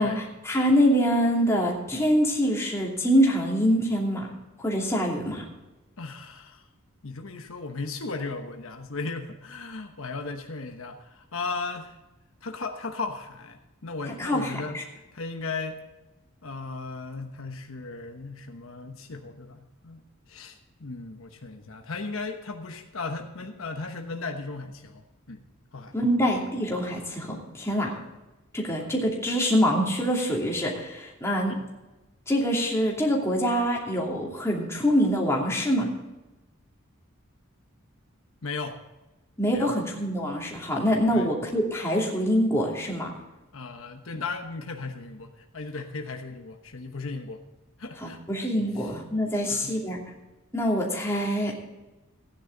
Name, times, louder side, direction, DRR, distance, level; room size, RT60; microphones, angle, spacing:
voice 1, 0.0-4.3 4.6-5.5 14.2-14.8 25.9-27.9 28.5-31.5 32.3-35.9 39.4-43.1 48.0-50.0 50.5-51.6, equal, 10° left, -2 dB, 2.6 m, -25 dB
voice 2, 6.0-6.6 7.0-12.0 12.4-14.8 15.1-15.8 16.4-20.0 20.3-25.0 25.3-25.4 25.7-25.9 27.9-28.0 28.8-28.9 31.5-31.7 38.4-38.8 39.5-39.7 41.1-41.3 43.5-47.4 47.8-48.5 48.8-48.9 49.5-49.8, left 3 dB, 70° left, 5 dB, 1.1 m, -36 dB
15.5 x 10.0 x 3.9 m, 1.0 s
head